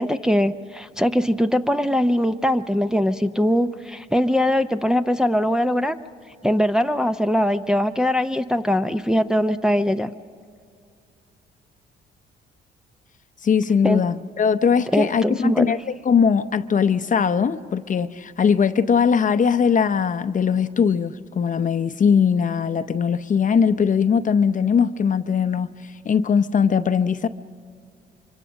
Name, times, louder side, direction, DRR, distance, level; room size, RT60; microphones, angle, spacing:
voice 1, 0.0-6.0 6.4-10.1 13.8-14.0 14.9-15.7, equal, 5° right, 7 dB, 0.6 m, -21 dB
voice 2, 13.4-15.8 16.0-25.7 26.0-27.3, left 6 dB, 40° left, 11 dB, 0.7 m, -20 dB
25.0 x 24.5 x 6.4 m, 2.3 s
cardioid pair, 90°, 20 cm